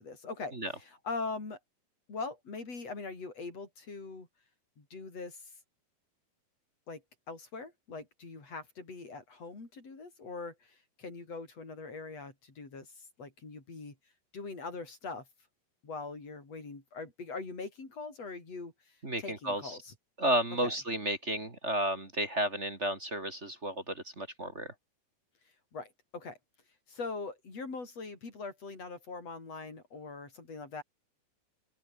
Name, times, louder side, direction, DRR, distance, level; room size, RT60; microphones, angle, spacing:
voice 1, 0.0-1.6 2.1-4.3 4.8-5.4 6.9-14.0 14.3-15.3 15.8-18.7 19.2-19.9 20.6-20.7 25.7-26.4 26.9-30.8, left 3 dB, 35° left, 7.1 m, -42 dB
voice 2, 19.0-19.8 20.2-24.7, right 1 dB, 20° right, 2.2 m, -32 dB
omnidirectional pair, 4.9 m